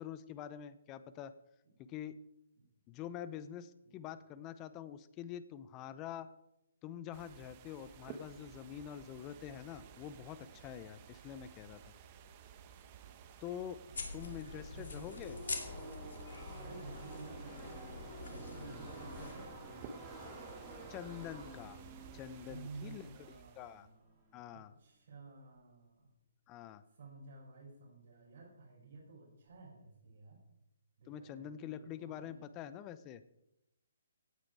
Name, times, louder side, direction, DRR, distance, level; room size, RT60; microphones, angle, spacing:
voice 1, 0.0-1.3 1.8-2.2 2.9-6.3 6.8-11.9 13.4-13.8 14.1-15.4 20.9-21.8 22.1-23.1 23.6-23.9 24.3-24.7 26.5-26.8 31.1-33.2, left 10 dB, 25° left, 14 dB, 0.7 m, -46 dB
sound 1, 7.1-23.9, right 7 dB, 35° right, 1.3 m, -55 dB
sound 2, 13.9-19.5, left 4 dB, 70° left, 2.9 m, -45 dB
voice 2, 13.9-15.1 16.5-17.8 18.1-19.5 22.5-24.2 24.5-26.1 26.9-30.4 31.0-32.5, right 3 dB, 60° right, -6 dB, 5.7 m, -53 dB
Car passing by / Race car auto racing, 14.3-24.3, right 2 dB, 15° right, 5.1 m, -51 dB
17.0 x 8.8 x 4.7 m, 0.87 s
figure-of-eight pair, 140°, 0 cm